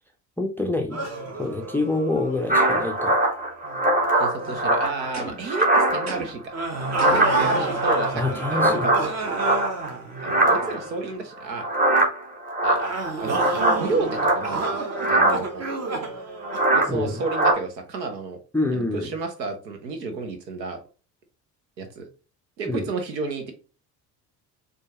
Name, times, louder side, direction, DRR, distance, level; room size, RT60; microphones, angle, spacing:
voice 1, 0.4-1.0 1.4-3.2 8.1-8.9 16.9-17.2 18.5-19.1 22.7-22.8, left 2 dB, 5° left, 0.4 m, -26 dB
sound 1, 0.9-4.0 4.4-4.7 6.5-11.1 12.8-17.4, right 3 dB, 30° right, 0.9 m, -30 dB
sound 2, 2.5-5.1 5.4-6.3 6.6-9.9 10.2-10.9 11.6-14.7 15.0-15.4 16.4-16.9 17.2-17.5, right 1 dB, 15° right, 1.3 m, -22 dB
voice 2, 4.1-6.5 7.0-9.2 10.2-11.7 12.6-12.9 13.2-14.8 15.1-15.6 16.7-18.4 18.7-20.8 21.8-22.1 22.6-23.5, right 3 dB, 85° right, 0.8 m, -31 dB
sound 3, 5.1-5.6 6.1-6.5 7.0-7.4, right 2 dB, 50° right, 1.5 m, -36 dB
4.4 x 2.3 x 2.9 m
figure-of-eight pair, 55°, 49 cm